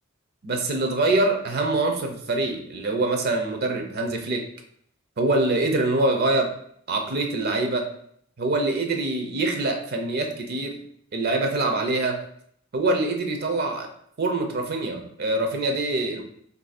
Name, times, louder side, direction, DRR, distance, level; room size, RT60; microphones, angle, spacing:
voice 1, 0.4-4.4 5.2-6.5 6.9-7.9 8.4-10.8 11.1-12.2 12.7-13.9 14.2-16.2, right 2 dB, 50° right, 3 dB, 0.6 m, -24 dB
2.7 x 2.6 x 4.1 m, 0.64 s
head